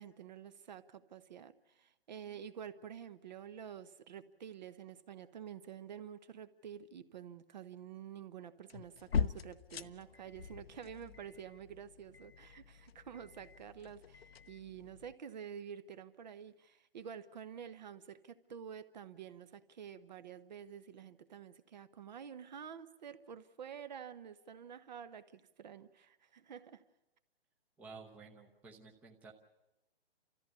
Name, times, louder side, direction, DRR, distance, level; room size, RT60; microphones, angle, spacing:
voice 1, 0.0-26.8, right 8 dB, 40° right, 13 dB, 1.0 m, -49 dB
sound 1, 8.7-15.1, left 7 dB, 65° left, 0.9 m, -42 dB
voice 2, 27.8-29.3, right 4 dB, 5° right, 0 dB, 0.8 m, -53 dB
30.0 x 14.5 x 8.2 m, 0.97 s
hypercardioid pair, 155°, 32 cm